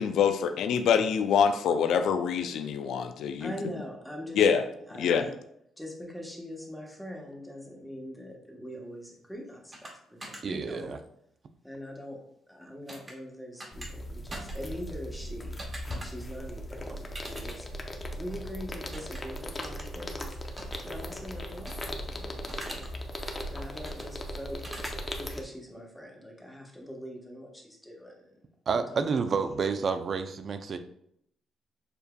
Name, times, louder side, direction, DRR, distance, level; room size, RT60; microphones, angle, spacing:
voice 1, 0.0-3.5 4.3-4.6 5.0-5.2, left 7 dB, 75° left, 8 dB, 0.3 m, -25 dB
voice 2, 3.4-4.4 4.9-5.3 5.8-10.0 10.2-10.9 11.6-12.2 12.5-15.5 16.0-17.7 18.1-20.6 20.8-22.9 23.5-24.6 25.1-28.3 28.7-28.8, equal, 5° left, -1 dB, 1.1 m, -42 dB
sound 1, 9.7-9.9 10.2-10.4 12.9-13.1 13.6-13.9 14.3-14.5 15.6-16.1 17.1-17.6 18.9-19.2 19.6-19.8 20.6-20.8 21.7-21.9 22.5-22.9 23.8-24.0 24.6-24.9, right 1 dB, 30° right, 1.1 m, -42 dB
voice 3, 10.4-11.0 28.7-30.8, right 5 dB, 45° right, 10 dB, 0.4 m, -29 dB
sound 2, 13.7-25.4, equal, 25° left, 0.6 m, -38 dB
6.7 x 2.6 x 2.2 m, 0.72 s
cardioid pair, 90°, 0 cm